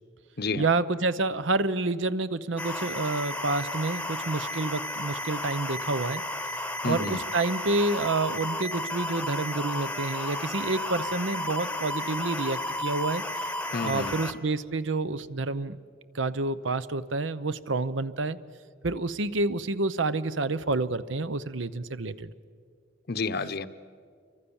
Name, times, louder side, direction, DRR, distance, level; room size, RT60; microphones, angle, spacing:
voice 1, 0.6-6.2 6.8-13.5 13.8-15.8 16.1-18.4 18.8-22.3, right 3 dB, 75° right, 14 dB, 0.8 m, -28 dB
sound 1, 2.6-14.3, left 1 dB, 5° left, 1.0 m, -33 dB
voice 2, 6.8-7.2 13.7-14.1 23.1-23.7, left 4 dB, 55° left, 12 dB, 0.8 m, -30 dB
29.0 x 24.5 x 7.1 m, 2.2 s
head